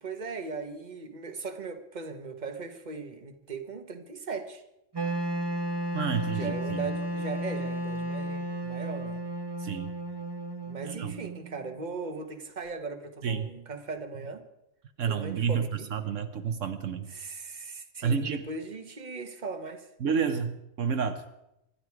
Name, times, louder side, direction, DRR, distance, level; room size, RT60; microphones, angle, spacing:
voice 1, 0.0-4.6 6.3-9.2 10.7-14.4 15.0-15.9 17.1-19.9, right 4 dB, 35° right, 1.5 m, -38 dB
Wind instrument woodwind instrument, 4.9-11.9, right 1 dB, 20° right, 1.4 m, -33 dB
voice 2, 5.9-6.8 9.6-9.9 10.9-11.1 13.2-13.5 15.0-17.1 18.0-18.4 20.0-21.2, right 6 dB, 75° right, 1.3 m, -30 dB
25.5 x 11.5 x 4.8 m
omnidirectional pair, 1.3 m